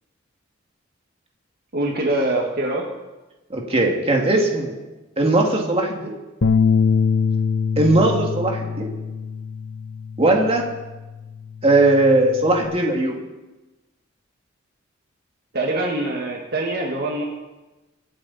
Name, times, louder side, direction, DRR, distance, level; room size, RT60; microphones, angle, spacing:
voice 1, 1.7-2.8 15.5-17.2, right 2 dB, 50° right, 0 dB, 1.7 m, -24 dB
voice 2, 3.5-4.8 5.2-6.2 7.8-8.9 10.2-10.7 11.6-13.1, right 2 dB, 30° right, 0 dB, 2.2 m, -19 dB
sound 1, 6.4-12.7, left 5 dB, 60° left, 0.8 m, -24 dB
25.0 x 8.7 x 4.2 m, 1.1 s
head